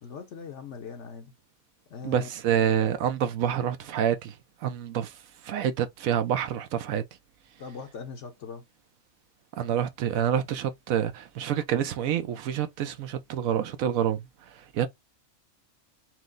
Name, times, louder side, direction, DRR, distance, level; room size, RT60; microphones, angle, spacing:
voice 1, 0.0-1.3 1.9-2.3 7.6-8.6, left 5 dB, 65° left, 1.0 m, -40 dB
voice 2, 2.0-4.3 4.6-7.0 9.6-14.9, right 9 dB, 80° right, 1.0 m, -27 dB
4.4 x 2.0 x 3.7 m
omnidirectional pair, 1.4 m